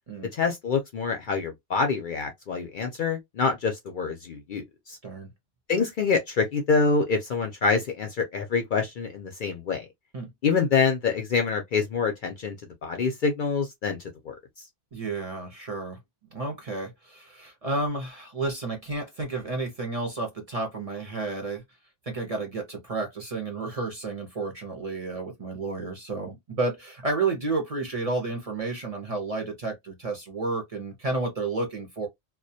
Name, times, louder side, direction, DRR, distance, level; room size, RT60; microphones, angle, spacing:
voice 1, 0.3-5.0 5.7-9.9 10.4-12.6 12.8-14.0 14.3-14.4, left 5 dB, 60° left, 0.6 m, -26 dB
voice 2, 14.9-16.0 16.3-21.6 22.1-32.1, right 3 dB, 40° right, 0.6 m, -31 dB
2.2 x 2.1 x 2.6 m
omnidirectional pair, 1.2 m